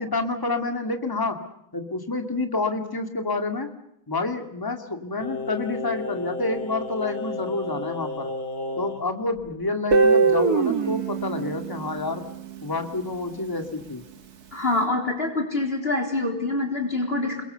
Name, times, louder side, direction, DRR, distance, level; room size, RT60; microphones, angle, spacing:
voice 1, 0.0-1.4 1.7-3.7 4.1-8.3 8.8-12.2 12.6-14.0, left 3 dB, 10° left, 6 dB, 2.1 m, -28 dB
Singing, 5.2-9.1 9.4-9.5, left 2 dB, 80° left, 4.0 m, -33 dB
Guitar, 9.9-12.9, right 4 dB, 50° right, 2.1 m, -22 dB
voice 2, 14.5-17.4, left 2 dB, 30° left, 3 dB, 4.0 m, -25 dB
29.0 x 23.0 x 7.0 m, 0.77 s
omnidirectional pair, 2.2 m